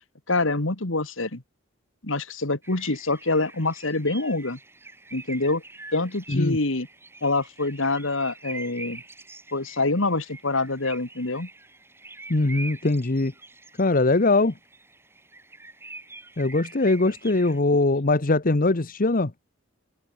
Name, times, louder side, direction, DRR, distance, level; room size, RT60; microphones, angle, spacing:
voice 1, 0.3-1.4 2.0-4.6 5.1-5.6 5.9-6.9 7.2-9.0 9.5-11.5, left 2 dB, 70° left, 2.3 m, -26 dB
sound 1, 2.6-17.6, right 3 dB, 10° right, 3.7 m, -44 dB
voice 2, 12.3-13.3 13.8-14.5 16.4-19.3, left 2 dB, 45° left, 1.1 m, -21 dB
open air
head